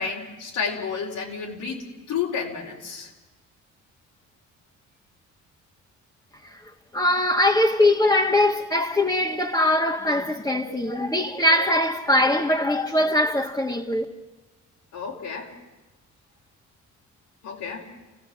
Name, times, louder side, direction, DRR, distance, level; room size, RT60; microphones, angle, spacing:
voice 1, 0.0-3.1 14.9-15.5 17.4-17.9, left 6 dB, 90° left, 4.3 m, -31 dB
voice 2, 6.9-14.0, left 1 dB, 10° left, 1.6 m, -21 dB
29.0 x 16.5 x 7.6 m
cardioid pair, 90°, 30 cm